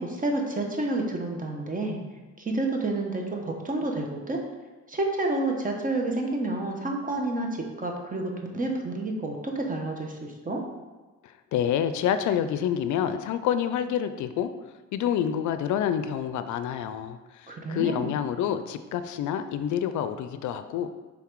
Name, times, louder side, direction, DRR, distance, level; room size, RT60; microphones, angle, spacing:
voice 1, 0.0-2.0 2.4-4.4 4.9-10.6 17.5-18.2, right 2 dB, 25° right, 2 dB, 1.1 m, -29 dB
voice 2, 11.2-14.5 14.9-20.9, left 9 dB, 75° left, 11 dB, 0.5 m, -28 dB
5.7 x 3.8 x 4.6 m, 1.2 s
cardioid pair, 90°, 30 cm